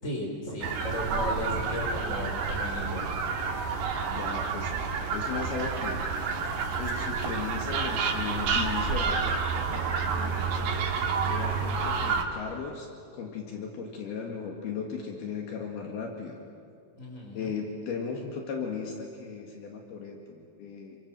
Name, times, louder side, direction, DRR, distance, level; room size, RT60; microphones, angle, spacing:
voice 1, 0.0-3.1 17.0-17.5, left 1 dB, 20° left, 0 dB, 5.5 m, -35 dB
sound 1, 0.6-12.2, right 5 dB, 80° right, 4.1 m, -29 dB
voice 2, 3.8-4.7 5.1-6.1 6.8-10.7 11.3-12.9 13.1-16.4 17.3-21.0, left 6 dB, 70° left, 1 dB, 3.9 m, -37 dB
29.0 x 23.5 x 7.7 m, 2.3 s
omnidirectional pair, 4.7 m